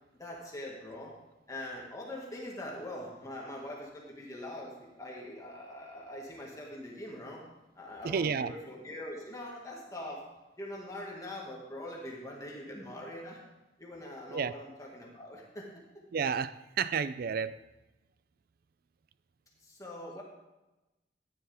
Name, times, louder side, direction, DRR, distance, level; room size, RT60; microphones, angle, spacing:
voice 1, 0.2-1.1 1.5-7.4 7.8-10.2 10.6-13.4 13.8-15.7 19.6-20.2, left 1 dB, 20° left, 1.9 m, -43 dB
voice 2, 8.0-8.5 14.3-14.6 16.1-17.6, right 6 dB, 55° right, 0.4 m, -31 dB
14.0 x 10.5 x 3.5 m
head